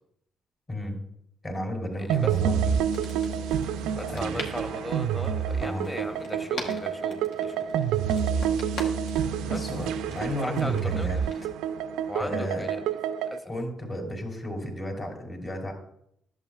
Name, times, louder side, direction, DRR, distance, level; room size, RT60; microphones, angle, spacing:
voice 1, 0.7-1.0 1.4-2.8 4.0-4.4 5.6-5.9 7.7-8.0 8.7-9.1 9.4-11.2 12.2-12.7 13.4-15.7, equal, 40° left, 3 dB, 2.7 m, -34 dB
voice 2, 2.0-2.3 3.9-7.6 9.4-9.6 10.4-11.2 12.1-12.8 13.3-13.4, equal, 20° left, 6 dB, 1.2 m, -37 dB
sound 1, 2.1-13.4, right 8 dB, 85° right, 0.3 m, -28 dB
sound 2, 2.9-11.5, left 2 dB, 75° left, 1.5 m, -43 dB
11.0 x 7.3 x 2.3 m, 0.71 s
supercardioid pair, 60°, 0 cm